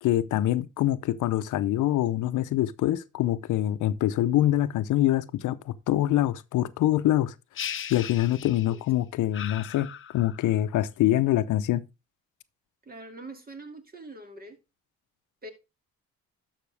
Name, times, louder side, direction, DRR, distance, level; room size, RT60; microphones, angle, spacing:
voice 1, 0.0-7.3 7.9-9.9 10.1-11.8, left 13 dB, 80° left, 0.7 m, -25 dB
sound 1, 7.6-8.9 9.3-10.6, left 9 dB, 45° left, 0.7 m, -38 dB
voice 2, 12.8-14.6 15.4-15.5, right 2 dB, 30° right, 2.3 m, -43 dB
12.0 x 5.9 x 3.3 m
cardioid pair, 90°, 30 cm